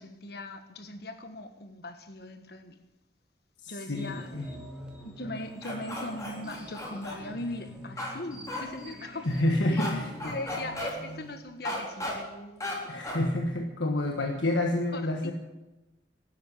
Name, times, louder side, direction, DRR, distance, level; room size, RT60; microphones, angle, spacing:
voice 1, 0.0-2.8 3.7-4.6 4.9-9.3 9.7-9.9 10.2-13.1 14.1-14.2 14.9-15.3, left 2 dB, 60° left, 1.5 m, -40 dB
voice 2, 3.9-4.5 9.2-10.1 12.9-15.3, left 1 dB, 85° left, 1.4 m, -28 dB
sound 1, 3.9-11.4, equal, 5° right, 3.0 m, -46 dB
sound 2, 5.6-7.2 8.0-8.1 8.5-8.6 9.8-9.9 10.2-10.9 11.6-12.1 12.6-12.8 13.0-13.2, left 1 dB, 20° left, 3.6 m, -34 dB
12.5 x 10.5 x 9.8 m
head